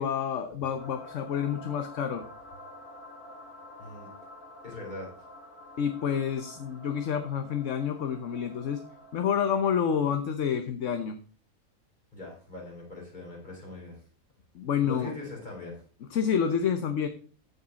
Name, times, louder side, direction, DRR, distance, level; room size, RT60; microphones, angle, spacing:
voice 1, 0.0-2.3 5.8-8.8 9.1-11.2 14.5-15.1 16.1-17.1, left 7 dB, 60° left, 8 dB, 1.2 m, -28 dB
sound 1, 0.8-9.6, left 1 dB, 80° left, 2.5 m, -48 dB
voice 2, 4.6-5.1 12.1-14.0 14.8-15.8, left 3 dB, 30° left, -3 dB, 4.6 m, -41 dB
14.5 x 5.6 x 4.1 m, 0.41 s
omnidirectional pair, 1.5 m